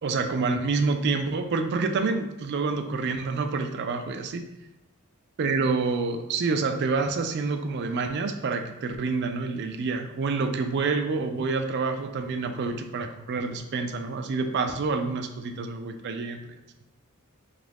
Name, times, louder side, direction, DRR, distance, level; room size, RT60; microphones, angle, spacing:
voice 1, 0.0-4.4 5.4-16.4, right 4 dB, 50° right, 6 dB, 0.3 m, -27 dB
3.0 x 2.5 x 3.3 m, 0.94 s
head